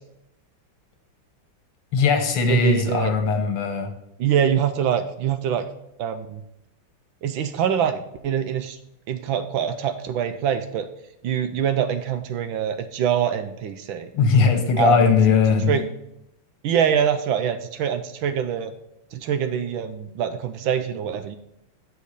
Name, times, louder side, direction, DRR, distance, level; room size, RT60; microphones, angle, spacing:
voice 1, 1.9-3.9 14.1-15.7, left 5 dB, 90° left, 6 dB, 2.1 m, -19 dB
voice 2, 2.5-3.1 4.2-5.7 6.0-6.4 7.2-8.8 9.1-10.9 11.2-14.1 14.8-15.1 15.7-15.8 16.6-18.7 19.1-21.4, right 8 dB, 75° right, 9 dB, 1.2 m, -24 dB
7.1 x 4.6 x 6.7 m, 0.82 s
omnidirectional pair, 2.4 m